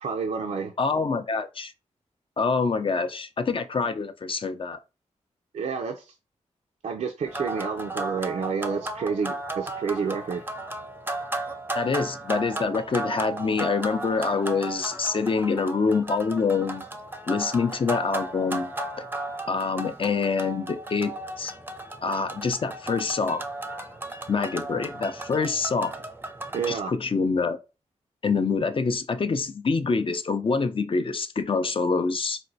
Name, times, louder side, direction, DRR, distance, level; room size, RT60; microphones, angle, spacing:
voice 1, 0.0-0.7 5.5-6.1 6.8-10.4 26.5-26.9, right 5 dB, 70° right, 0.4 m, -29 dB
voice 2, 0.8-1.7 2.4-4.8 11.8-16.8 17.3-18.7 19.0-19.1 19.5-21.5 22.0-23.4 24.3-25.9 26.7-27.6 28.2-32.4, left 4 dB, 45° left, 0.5 m, -26 dB
sound 1, 7.3-26.8, right 2 dB, 15° right, 0.5 m, -35 dB
4.1 x 2.2 x 2.6 m
cardioid pair, 50°, 13 cm